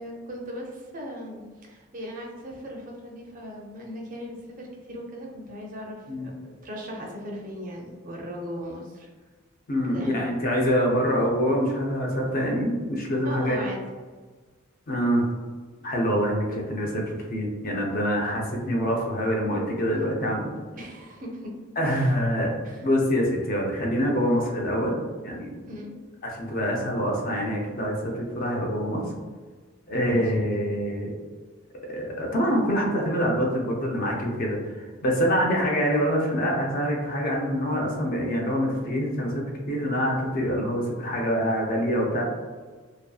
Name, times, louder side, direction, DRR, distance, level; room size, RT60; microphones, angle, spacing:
voice 1, 0.0-9.1 9.9-10.2 13.2-13.8 20.7-22.1 22.6-22.8 25.6-25.9 30.1-30.4, equal, 40° right, -1 dB, 0.5 m, -38 dB
voice 2, 9.7-13.6 14.9-15.2 15.8-20.5 21.8-22.6 22.8-24.9 25.2-25.6 26.2-29.0 29.9-31.1 31.9-42.2, equal, 45° left, -1 dB, 0.5 m, -25 dB
2.6 x 2.3 x 2.3 m, 1.4 s
head